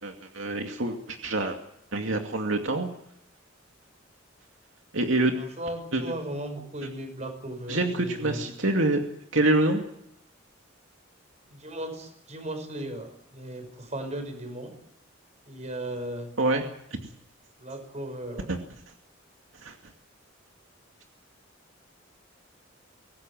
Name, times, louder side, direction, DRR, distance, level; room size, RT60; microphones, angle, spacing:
voice 1, 0.0-1.6 1.9-2.9 4.9-5.3 5.9-6.0 7.7-9.0 9.3-9.8 16.4-16.6 18.5-18.6 19.6-19.8, right 2 dB, 80° right, 3 dB, 2.5 m, -26 dB
voice 2, 5.3-8.5 11.5-14.7 15.5-16.4 17.6-18.5, right 1 dB, 35° right, 7 dB, 5.8 m, -36 dB
24.0 x 18.5 x 7.8 m, 0.74 s
head